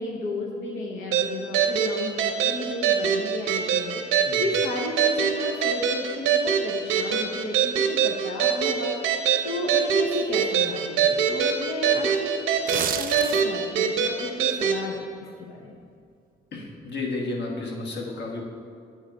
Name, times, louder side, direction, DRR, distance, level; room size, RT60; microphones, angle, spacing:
voice 1, 0.0-8.9 9.4-12.3 12.7-15.8, left 2 dB, 85° left, -2 dB, 0.7 m, -33 dB
sound 1, 1.1-14.8, right 7 dB, 90° right, 0.7 m, -24 dB
sound 2, 12.5-13.7 14.1-14.3, right 8 dB, 45° right, 0.4 m, -30 dB
voice 2, 16.5-18.4, left 2 dB, 60° left, 0 dB, 1.2 m, -32 dB
7.6 x 3.9 x 5.2 m, 2.4 s
cardioid pair, 90°, 20 cm